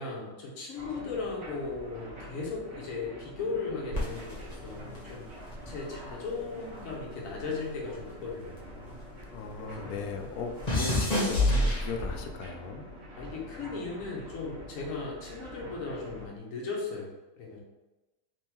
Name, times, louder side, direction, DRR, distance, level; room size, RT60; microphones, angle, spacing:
voice 1, 0.0-5.3 5.7-8.9 9.6-10.2 13.2-17.6, left 4 dB, 70° left, -1 dB, 1.3 m, -37 dB
sound 1, 0.8-16.3, equal, 50° right, 1.4 m, -46 dB
sound 2, 3.9-6.4 6.7-9.3 9.6-12.4 13.2-13.5, left 1 dB, 35° left, 0.9 m, -30 dB
voice 2, 9.3-12.9, left 4 dB, 90° left, 4 dB, 1.1 m, -38 dB
3.5 x 3.5 x 2.9 m, 1.1 s
omnidirectional pair, 1.5 m